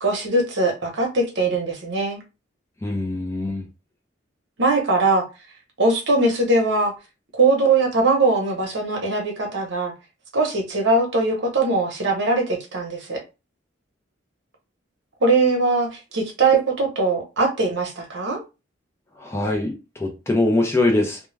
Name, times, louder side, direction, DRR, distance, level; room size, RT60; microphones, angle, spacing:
voice 1, 0.0-2.2 4.6-5.2 5.8-6.9 7.3-9.9 10.3-13.2 15.2-18.4, right 3 dB, 60° right, 0.9 m, -21 dB
voice 2, 2.8-3.6 19.2-19.7 20.0-21.2, left 2 dB, 15° left, 0.4 m, -22 dB
2.2 x 2.1 x 3.2 m
head